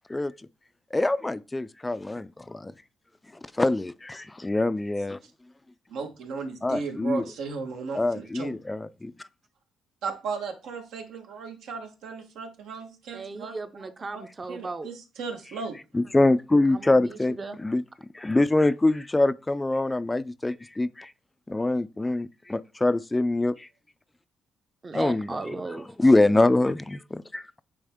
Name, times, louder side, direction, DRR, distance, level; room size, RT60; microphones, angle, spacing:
voice 1, 0.9-2.7 3.6-5.2 6.6-7.2 8.0-9.1 15.9-17.4 17.6-17.8 18.1-21.1 21.5-23.7 24.9-25.3 26.0-27.4, left 2 dB, 15° left, 0.3 m, -24 dB
voice 2, 5.9-8.5 10.0-13.6 14.1-14.2 14.5-15.8 24.9-25.0, right 4 dB, 85° right, 1.3 m, -35 dB
voice 3, 13.1-14.9 16.7-17.6 24.8-25.9, right 3 dB, 30° right, 0.6 m, -36 dB
8.9 x 3.4 x 3.6 m
cardioid pair, 90°, 0 cm